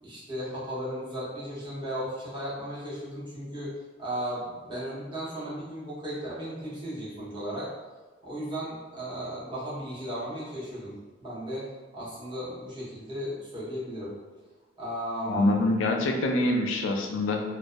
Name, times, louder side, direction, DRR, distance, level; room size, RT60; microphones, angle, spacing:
voice 1, 0.0-7.7 8.2-10.9 11.2-11.7 11.9-14.1 14.8-15.6, equal, 25° right, -9 dB, 0.9 m, -35 dB
voice 2, 15.3-17.4, left 2 dB, 80° left, 3 dB, 0.3 m, -25 dB
2.5 x 2.1 x 2.3 m, 1.3 s
head